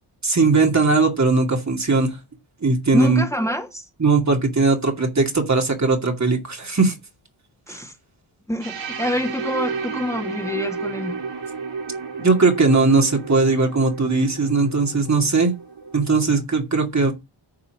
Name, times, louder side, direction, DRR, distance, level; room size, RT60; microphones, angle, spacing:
voice 1, 0.2-2.1 2.6-3.2 4.0-6.9 7.7-7.8 12.2-15.5 15.9-17.1, right 3 dB, 35° right, 2.4 m, -19 dB
voice 2, 2.9-3.8 7.7-7.9 8.5-11.2, equal, 5° left, 2.0 m, -26 dB
sound 1, 8.6-16.4, right 5 dB, 60° right, 5.4 m, -32 dB
9.7 x 5.7 x 7.1 m
wide cardioid pair, 180°, 49 cm